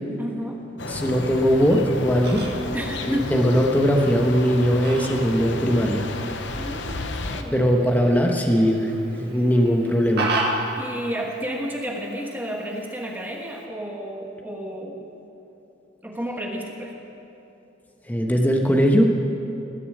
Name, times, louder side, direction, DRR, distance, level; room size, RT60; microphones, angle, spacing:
voice 1, 0.2-0.6 2.7-3.3 6.5-7.6 10.8-15.0 16.0-16.9, equal, 10° right, 0 dB, 1.3 m, -31 dB
sound 1, 0.8-7.4, left 3 dB, 60° left, 0.8 m, -33 dB
voice 2, 0.8-2.4 3.0-6.1 7.5-10.3 18.1-19.1, equal, 10° left, 1 dB, 1.0 m, -20 dB
Fowl, 1.7-13.7, right 2 dB, 55° right, 2.0 m, -35 dB
19.5 x 6.9 x 8.5 m, 2.9 s
head